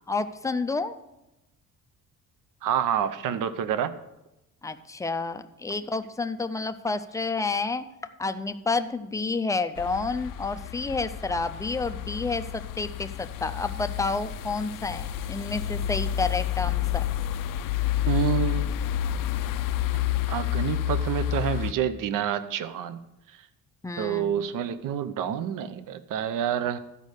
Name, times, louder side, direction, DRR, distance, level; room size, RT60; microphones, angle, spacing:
voice 1, 0.1-1.0 4.6-7.8 8.2-17.0 23.8-24.4, left 3 dB, 10° left, 9 dB, 0.3 m, -30 dB
voice 2, 2.6-3.9 18.1-18.8 20.3-23.0 24.0-26.8, right 9 dB, 70° right, 13 dB, 0.7 m, -28 dB
sound 1, 9.8-21.7, left 12 dB, 70° left, 0.5 m, -29 dB
12.5 x 5.3 x 6.4 m, 0.94 s
cardioid pair, 160°, 34 cm